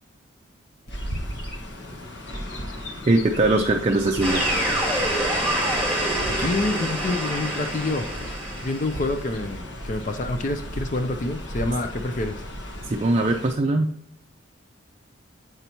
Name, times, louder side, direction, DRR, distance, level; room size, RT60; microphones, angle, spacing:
Chirp tweet, 0.9-13.5, equal, 65° left, 1.3 m, -35 dB
voice 1, 3.1-4.4 12.9-13.9, right 2 dB, 30° right, 2 dB, 0.4 m, -21 dB
sound 1, 4.2-9.2, right 1 dB, 5° left, 2.5 m, -26 dB
voice 2, 6.4-8.1 8.6-12.4, left 2 dB, 40° left, 7 dB, 0.5 m, -27 dB
7.8 x 5.6 x 3.0 m, 0.77 s
head